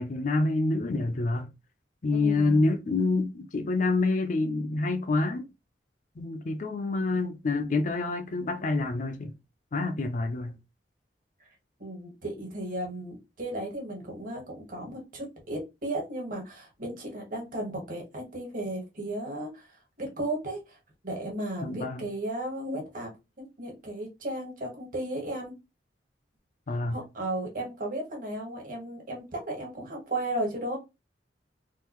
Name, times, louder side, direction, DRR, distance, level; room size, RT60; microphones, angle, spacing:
voice 1, 0.0-1.5 2.0-5.5 6.2-9.3 9.7-10.6 21.6-22.1 26.7-27.0, left 3 dB, 45° left, 0.5 m, -27 dB
voice 2, 2.1-2.7 11.8-19.7 20.0-20.8 21.0-23.1 23.4-25.5 26.9-30.8, right 1 dB, 50° right, 1.5 m, -35 dB
3.7 x 2.4 x 3.0 m
head